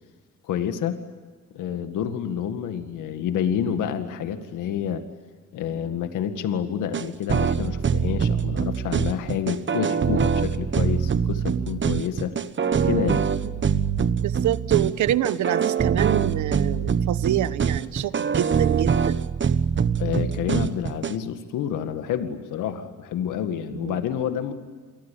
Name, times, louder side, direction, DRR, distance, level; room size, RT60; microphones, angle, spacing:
voice 1, 0.4-1.0 1.5-5.0 5.5-12.4 12.8-13.2 20.0-24.5, left 9 dB, 85° left, 8 dB, 2.1 m, -28 dB
sound 1, 6.9-21.1, right 7 dB, 40° right, 1.3 m, -23 dB
voice 2, 14.2-19.2 23.7-24.0, right 12 dB, 75° right, 15 dB, 1.2 m, -26 dB
29.0 x 23.0 x 8.6 m, 1.5 s
cardioid pair, 90°, 30 cm